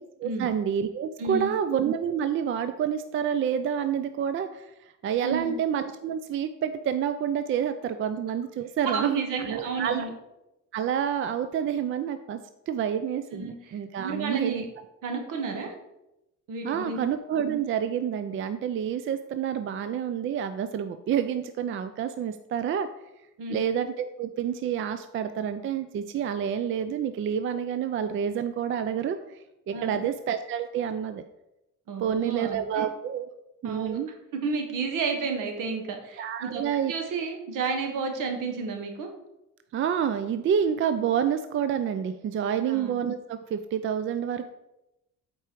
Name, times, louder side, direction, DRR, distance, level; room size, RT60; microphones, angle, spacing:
voice 1, 0.2-4.7 5.0-10.1 10.7-12.4 12.7-14.6 16.6-22.9 23.5-29.4 29.7-31.2 32.0-33.3 33.6-34.1 36.2-36.9 39.7-44.5, right 8 dB, 40° right, 10 dB, 0.4 m, -28 dB
voice 2, 1.2-1.5 5.2-5.5 8.8-10.1 13.3-14.6 15.0-15.8 16.5-17.0 23.4-23.6 29.7-30.0 31.9-32.9 33.6-34.0 34.4-39.1 42.7-42.9, right 4 dB, 75° right, 4 dB, 1.5 m, -31 dB
8.3 x 4.6 x 4.6 m, 0.89 s
cardioid pair, 155°, 32 cm